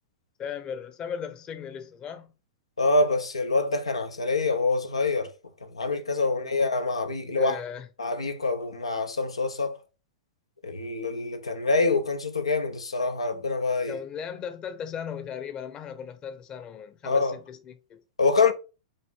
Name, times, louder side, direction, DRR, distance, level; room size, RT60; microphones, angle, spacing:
voice 1, 0.4-2.3 6.3-6.6 7.2-7.9 13.9-18.0, left 7 dB, 30° left, 0.8 m, -37 dB
voice 2, 2.8-5.3 5.6-7.6 8.0-9.8 10.6-14.0 17.0-17.3 18.2-18.5, left 3 dB, 85° left, 0.7 m, -25 dB
5.5 x 2.6 x 3.5 m
figure-of-eight pair, 100°, 3 cm